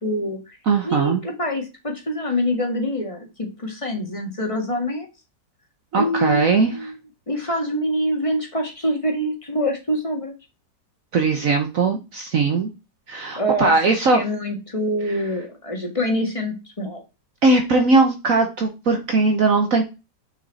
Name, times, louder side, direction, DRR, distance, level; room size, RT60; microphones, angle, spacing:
voice 1, 0.0-0.6 0.8-5.1 6.0-6.9 7.3-10.3 13.4-17.0, equal, 20° left, 2 dB, 1.6 m, -25 dB
voice 2, 0.7-1.2 5.9-6.8 11.1-12.7 13.1-14.2 17.4-19.8, right 3 dB, 55° right, 4 dB, 1.3 m, -19 dB
6.3 x 6.2 x 4.1 m, 0.28 s
omnidirectional pair, 2.0 m